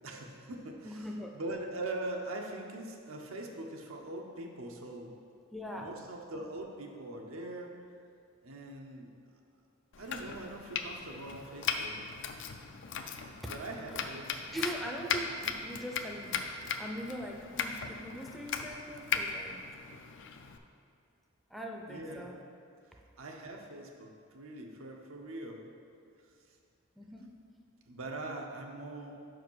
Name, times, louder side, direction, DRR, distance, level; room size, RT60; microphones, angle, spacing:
voice 1, 0.0-5.1 5.7-7.7 8.4-9.1 10.0-12.0 13.5-14.3 21.9-22.3 23.2-25.7 27.9-29.2, right 2 dB, 80° right, 1 dB, 0.8 m, -42 dB
voice 2, 0.8-1.3 5.5-5.9 13.4-13.5 14.5-19.6 21.5-22.3 27.0-27.3, equal, ahead, 0 dB, 0.5 m, -41 dB
Domestic sounds home sounds, 9.9-20.6, left 6 dB, 60° left, 0.4 m, -38 dB
5.4 x 4.9 x 6.1 m, 2.4 s
head